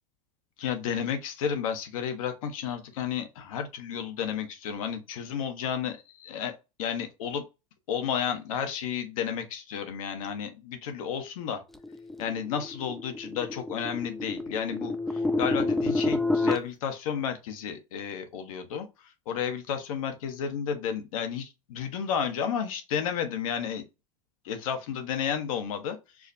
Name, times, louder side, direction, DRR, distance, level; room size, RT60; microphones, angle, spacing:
voice 1, 0.6-6.5 6.8-7.4 7.9-11.6 12.2-18.9 19.3-23.8 24.4-26.3, left 8 dB, 75° left, 1.0 m, -32 dB
sound 1, 11.8-16.6, left 2 dB, ahead, 0.4 m, -29 dB
4.7 x 2.2 x 2.6 m
hypercardioid pair, 105°, 18 cm